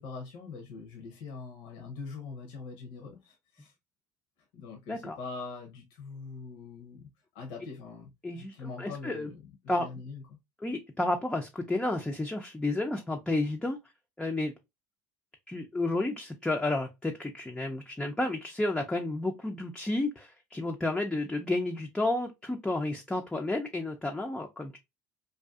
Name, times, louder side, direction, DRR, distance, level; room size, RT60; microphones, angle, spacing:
voice 1, 0.0-3.7 4.5-7.1 7.3-10.4, left 4 dB, 70° left, 0.7 m, -43 dB
voice 2, 8.2-9.3 9.7-9.9 10.6-13.8 14.2-14.5 15.5-24.8, left 2 dB, 10° left, 0.4 m, -31 dB
2.5 x 2.3 x 2.3 m
hypercardioid pair, 80°, 9 cm